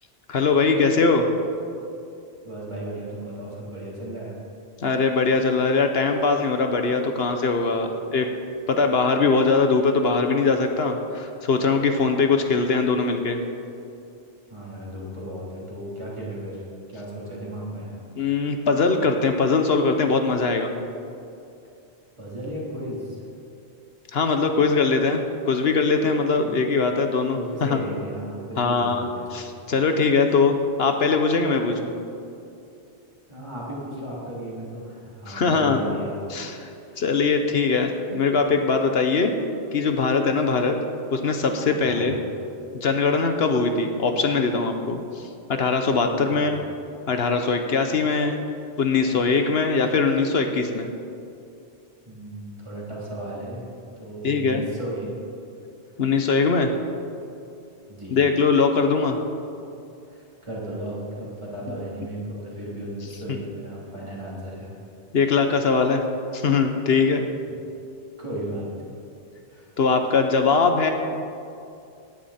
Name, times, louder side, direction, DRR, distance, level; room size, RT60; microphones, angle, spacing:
voice 1, 0.3-1.3 4.8-8.3 8.7-13.4 18.2-20.7 24.1-27.8 28.6-31.9 35.3-35.8 36.3-36.7 37.0-39.3 39.7-40.8 41.1-42.2 42.7-46.6 47.1-48.4 48.8-50.9 54.2-54.6 56.0-56.7 58.1-59.2 61.7-61.8 63.3-63.4 65.1-66.0 66.3-67.2 69.8-70.9, left 4 dB, 65° left, 6 dB, 1.1 m, -21 dB
voice 2, 2.4-4.4 14.5-16.6 16.9-18.0 22.2-23.2 26.4-26.5 27.3-29.2 33.3-36.1 36.7-37.0 41.8-42.2 46.3-46.5 52.1-53.7 54.0-55.1 57.9-58.2 60.1-64.7 67.5-67.6 68.2-68.9 69.5-69.7, right 1 dB, 25° right, -6 dB, 3.5 m, -35 dB
17.5 x 11.0 x 4.3 m, 2.5 s
omnidirectional pair, 1.1 m